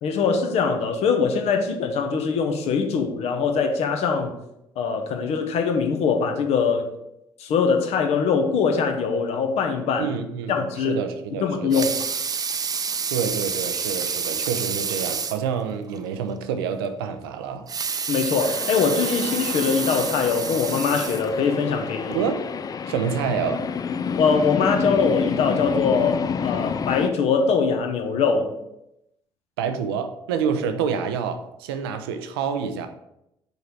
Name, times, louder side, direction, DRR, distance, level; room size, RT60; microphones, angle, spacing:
voice 1, 0.0-4.3 4.8-6.9 7.4-10.1 10.5-11.0 11.4-11.9 18.1-22.2 24.2-28.5, left 5 dB, 55° left, 5 dB, 1.0 m, -22 dB
voice 2, 10.0-11.9 13.1-17.7 22.1-22.4 22.9-23.7 29.6-32.9, right 6 dB, 75° right, 7 dB, 0.6 m, -27 dB
Water tap faucet / Sink (filling or washing) / Liquid, 11.5-15.5 15.9-16.0 16.4-16.5 17.5-21.7 22.3-22.4, right 6 dB, 30° right, 0.5 m, -29 dB
sound 1, 18.4-27.1, left 6 dB, 30° left, 0.3 m, -29 dB
5.4 x 3.9 x 4.6 m, 0.82 s
figure-of-eight pair, 50°, 13 cm